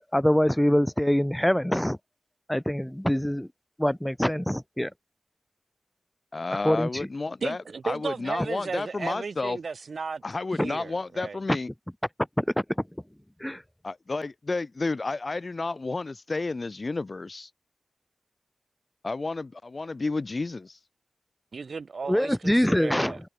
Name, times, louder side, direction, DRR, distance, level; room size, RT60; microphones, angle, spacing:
voice 1, 0.0-2.0 2.5-3.5 3.8-4.9 6.5-7.1 12.4-12.5 13.4-13.6 22.1-23.1, equal, 5° left, 0.7 m, -24 dB
voice 2, 6.3-9.6 10.2-11.7 13.8-17.5 19.0-20.8, left 3 dB, 45° left, 0.6 m, -31 dB
voice 3, 7.4-10.2 10.6-11.4 21.5-23.2, right 5 dB, 75° right, 1.3 m, -35 dB
wide cardioid pair, 75°, 0 cm